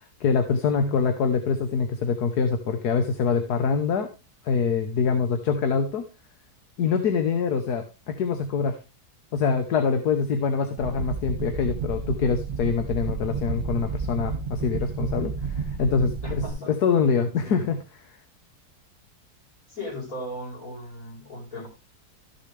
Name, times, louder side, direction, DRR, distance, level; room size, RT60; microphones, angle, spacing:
voice 1, 0.0-4.1 4.4-6.0 6.8-8.8 9.3-17.8 18.1-18.2, left 5 dB, 75° left, 7 dB, 1.6 m, -25 dB
sound 1, 10.8-16.5, right 5 dB, 35° right, 1.6 m, -31 dB
voice 2, 16.2-16.8 17.5-17.7 19.7-21.7, left 1 dB, 60° left, -2 dB, 5.3 m, -36 dB
14.0 x 6.7 x 3.3 m, 0.28 s
omnidirectional pair, 1.7 m